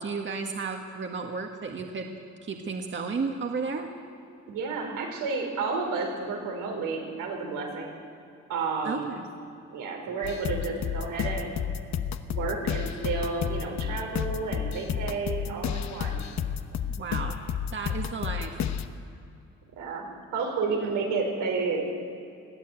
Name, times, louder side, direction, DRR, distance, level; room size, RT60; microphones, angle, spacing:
voice 1, 0.0-2.1 2.4-3.9 8.8-9.2 17.0-17.4 17.7-18.6, right 4 dB, 40° right, 3 dB, 1.8 m, -33 dB
voice 2, 4.5-7.9 8.5-9.2 9.7-11.5 12.3-16.2 19.7-21.9, right 4 dB, 90° right, 2 dB, 4.9 m, -31 dB
sound 1, 10.2-18.9, left 8 dB, 65° left, 1.2 m, -31 dB
21.0 x 14.5 x 9.2 m, 2.6 s
cardioid pair, 90°, 30 cm